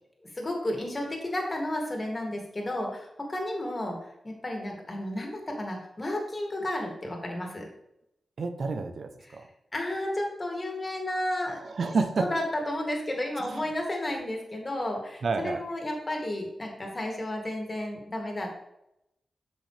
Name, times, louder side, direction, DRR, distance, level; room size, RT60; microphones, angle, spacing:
voice 1, 0.3-7.7 9.2-9.4 9.7-11.6 12.2-18.5, left 1 dB, 35° left, 1 dB, 2.7 m, -32 dB
voice 2, 8.4-9.5 11.6-12.3 13.4-13.6 15.2-15.6, right 4 dB, 70° right, 8 dB, 0.8 m, -29 dB
8.2 x 6.3 x 3.4 m, 0.82 s
cardioid pair, 45°, 0 cm